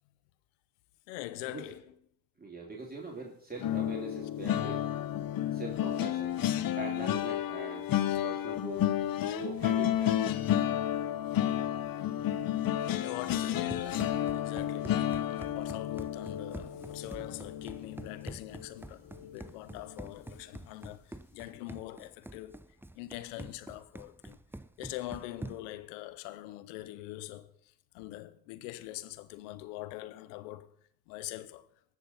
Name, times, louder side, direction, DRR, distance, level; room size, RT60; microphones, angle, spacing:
voice 1, 1.1-1.8 8.1-8.2 13.0-22.6 22.9-24.4 24.8-27.5 27.9-30.7 31.1-31.7, left 16 dB, 85° left, 0.7 m, -43 dB
voice 2, 2.4-4.8 5.5-6.4 6.8-7.9 8.2-8.8 9.3-10.2, right 3 dB, 20° right, 2.5 m, -42 dB
sound 1, 3.6-18.8 19.2-19.4 19.7-19.9, left 11 dB, 55° left, 0.8 m, -31 dB
Run, 13.6-25.8, right 1 dB, 5° right, 0.6 m, -47 dB
18.0 x 7.3 x 4.1 m
hypercardioid pair, 45°, 42 cm